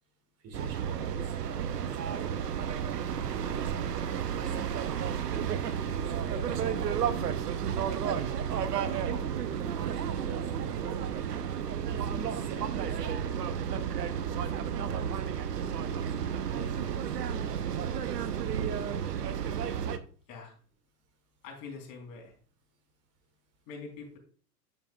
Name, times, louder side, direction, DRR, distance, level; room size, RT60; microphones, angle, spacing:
voice 1, 0.4-1.9 2.2-2.6 3.2-4.6 5.8-7.5 8.0-8.4 8.7-11.0 11.8-13.6 14.3-17.0, right 4 dB, 30° right, 5 dB, 2.3 m, -45 dB
sound 1, 0.5-20.0, right 8 dB, 75° right, 0.8 m, -32 dB
voice 2, 21.4-22.3 23.7-24.2, left 4 dB, 45° left, 1 dB, 4.0 m, -44 dB
8.8 x 7.4 x 2.4 m, 0.41 s
figure-of-eight pair, 95°, 48 cm